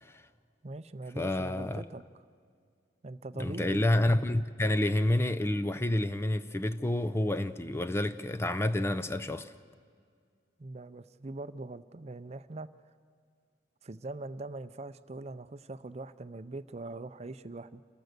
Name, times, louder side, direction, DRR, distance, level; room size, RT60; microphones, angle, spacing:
voice 1, 0.6-2.0 3.0-3.8 10.6-12.7 13.8-17.8, right 2 dB, 35° right, 0.5 m, -42 dB
voice 2, 1.2-1.8 3.3-9.5, left 1 dB, 15° left, 0.5 m, -29 dB
28.5 x 14.5 x 6.7 m
head